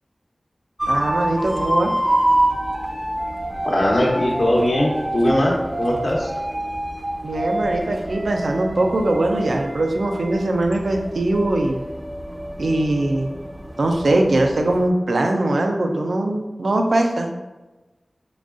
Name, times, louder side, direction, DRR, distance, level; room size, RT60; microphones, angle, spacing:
sound 1, 0.8-14.9, right 1 dB, 20° right, 0.5 m, -26 dB
voice 1, 0.9-1.9 7.2-11.8 12.6-13.3 13.8-17.3, right 2 dB, 85° right, 3 dB, 0.5 m, -21 dB
voice 2, 3.6-5.5 5.8-6.3, left 1 dB, 70° left, -4 dB, 0.9 m, -19 dB
4.7 x 3.9 x 2.5 m, 1.1 s
wide cardioid pair, 65°, 0 cm